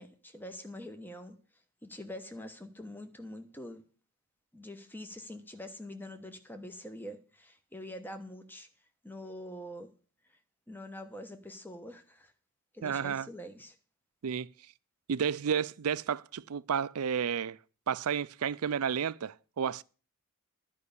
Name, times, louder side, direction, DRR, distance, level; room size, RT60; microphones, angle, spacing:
voice 1, 0.0-1.4 1.8-3.8 4.5-8.7 9.0-9.9 10.3-10.4 10.7-12.3 12.7-13.8, left 1 dB, 10° left, 1.0 m, -45 dB
voice 2, 12.8-13.3 14.2-14.5 15.1-17.6 17.9-19.8, right 7 dB, 90° right, 0.5 m, -31 dB
11.5 x 5.3 x 8.5 m
head